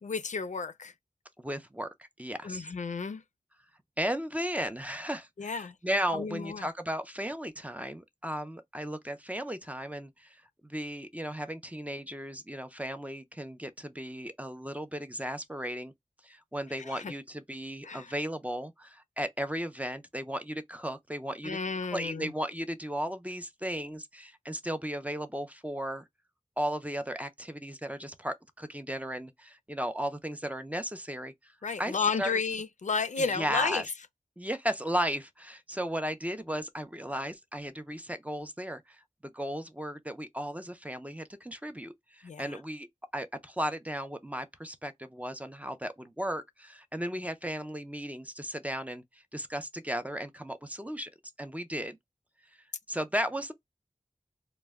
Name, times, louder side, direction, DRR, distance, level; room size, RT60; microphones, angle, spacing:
voice 1, 0.0-0.9 2.4-3.2 5.4-5.8 6.1-6.7 16.8-17.1 17.8-18.2 21.4-22.3 31.6-33.9 42.2-42.6, left 5 dB, 70° left, 0.4 m, -32 dB
voice 2, 1.4-2.7 4.0-15.9 16.2-21.6 21.9-26.1 26.6-31.5 31.8-32.4 33.2-33.8 34.4-42.9 43.1-51.1 51.4-52.0 52.9-53.5, equal, 10° right, 0.4 m, -35 dB
2.1 x 2.1 x 3.3 m
wide cardioid pair, 60°, 13 cm